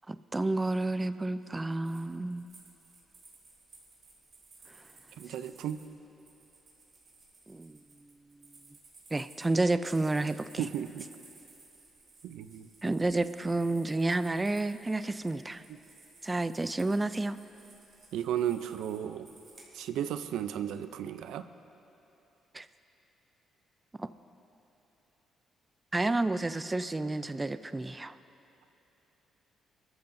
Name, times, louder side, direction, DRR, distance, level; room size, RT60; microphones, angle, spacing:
voice 1, 0.1-2.5 7.5-7.8 9.1-10.7 12.8-15.6 16.2-17.4 22.5-22.7 24.0-24.1 25.9-28.2, right 2 dB, 20° right, 13 dB, 0.4 m, -30 dB
sound 1, 1.8-19.9, right 3 dB, 45° right, 3.7 m, -58 dB
voice 2, 5.2-5.8 10.6-11.1 12.2-12.7 18.1-19.3 19.7-21.4, right 10 dB, 85° right, 10 dB, 0.5 m, -34 dB
23.5 x 14.0 x 2.7 m, 3.0 s
cardioid pair, 90°, 0 cm